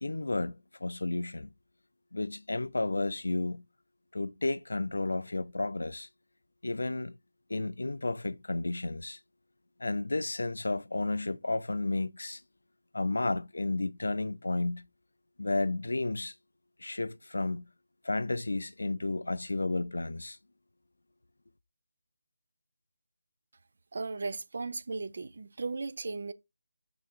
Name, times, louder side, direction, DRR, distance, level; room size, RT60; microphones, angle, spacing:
voice 1, 0.0-1.5 2.1-3.6 4.1-6.1 6.6-7.2 7.5-9.2 9.8-12.4 12.9-14.9 15.4-16.3 16.8-17.7 18.0-20.4, left 2 dB, 80° left, 0.3 m, -32 dB
voice 2, 23.9-26.3, right 3 dB, 55° right, 0.4 m, -36 dB
5.7 x 3.7 x 2.4 m
figure-of-eight pair, 165°, 0 cm